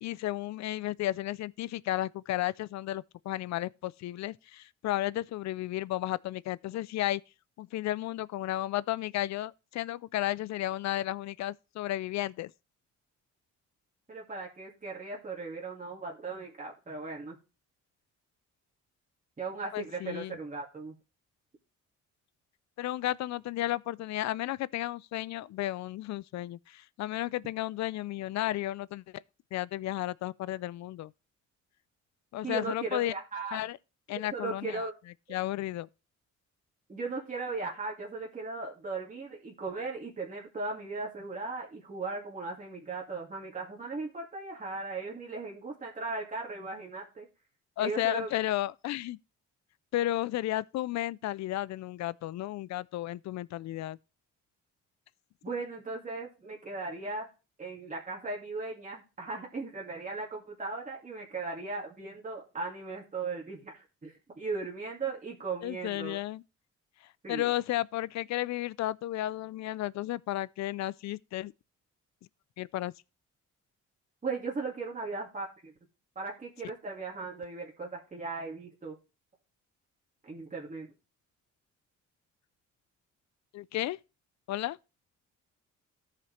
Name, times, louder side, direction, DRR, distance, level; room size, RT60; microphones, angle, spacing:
voice 1, 0.0-7.2 7.6-12.5 19.7-20.4 22.8-29.2 29.5-31.1 32.3-33.1 33.5-33.8 34.1-34.8 35.3-35.9 47.8-49.2 49.9-54.0 65.6-66.4 67.3-71.5 72.6-72.9 83.5-84.0 84.5-84.8, left 15 dB, 65° left, 0.4 m, -33 dB
voice 2, 14.1-17.4 19.4-21.0 32.4-33.6 34.1-34.9 36.9-47.3 47.8-48.3 55.4-57.3 57.6-66.2 67.2-67.5 74.2-75.7 76.2-79.0 80.2-80.9, right 3 dB, 25° right, 2.2 m, -37 dB
14.0 x 5.0 x 3.2 m
cardioid pair, 90°, 30 cm